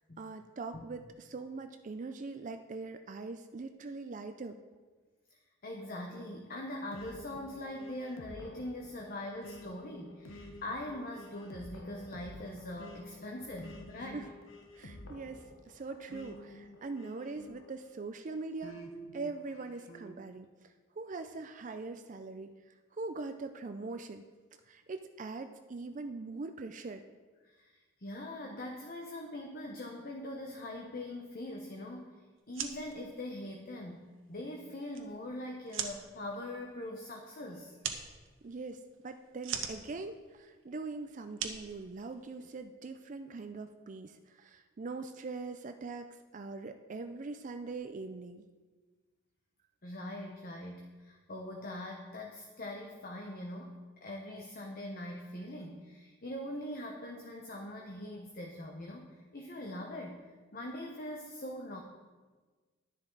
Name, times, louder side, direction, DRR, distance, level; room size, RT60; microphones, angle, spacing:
voice 1, 0.2-4.6 14.1-14.3 14.7-18.8 19.1-20.5 21.0-22.5 22.9-24.2 24.7-27.0 38.4-46.1 46.3-48.5, right 3 dB, 40° right, 8 dB, 0.4 m, -42 dB
voice 2, 5.3-14.3 27.4-32.2 32.5-37.7 49.8-53.7 54.0-60.2 60.5-61.8, left 1 dB, 45° left, 1 dB, 1.0 m, -42 dB
sound 1, 6.9-18.0 18.6-20.2, equal, 75° left, 1.2 m, -50 dB
sound 2, 32.4-42.6, right 8 dB, 75° right, 1.0 m, -44 dB
11.0 x 10.5 x 3.9 m, 1.4 s
head